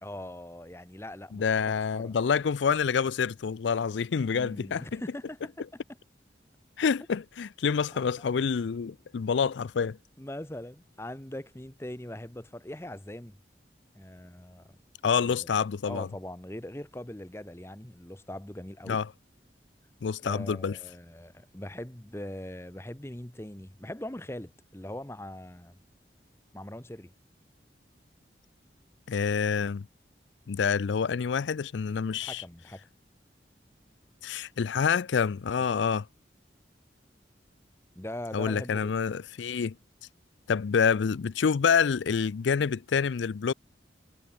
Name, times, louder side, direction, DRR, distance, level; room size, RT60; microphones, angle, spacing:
voice 1, 0.0-1.6 1.9-2.2 4.3-5.8 10.2-13.3 13.9-14.7 15.2-15.5 15.8-19.0 20.2-25.8 26.5-27.1 32.2-32.9 38.0-38.9, left 1 dB, 15° left, 1.0 m, -41 dB
voice 2, 1.3-5.0 6.8-10.0 15.0-16.1 18.9-19.1 20.0-20.8 29.1-29.9 30.5-32.4 34.2-36.1 38.3-39.7 40.5-43.5, left 6 dB, 90° left, 0.4 m, -27 dB
head